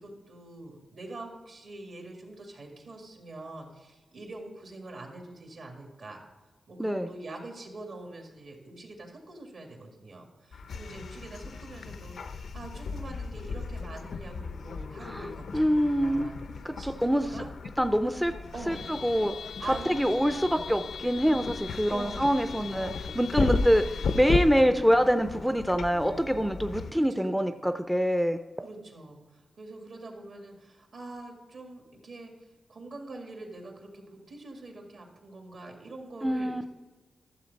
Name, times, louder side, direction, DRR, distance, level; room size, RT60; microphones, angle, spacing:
voice 1, 0.0-6.2 6.7-16.4 16.8-17.5 18.5-18.9 19.6-20.5 21.9-22.2 22.7-23.1 26.9-27.6 28.6-32.3 32.7-36.7, right 2 dB, 65° right, 2 dB, 2.0 m, -44 dB
sound 1, 10.5-26.9, left 4 dB, 80° left, 0.5 m, -35 dB
voice 2, 15.5-16.3 16.6-17.3 17.8-18.3 18.7-19.3 19.9-28.4 36.2-36.6, equal, ahead, 8 dB, 0.4 m, -25 dB
12.5 x 7.1 x 4.0 m, 1.2 s
wide cardioid pair, 115°, 0 cm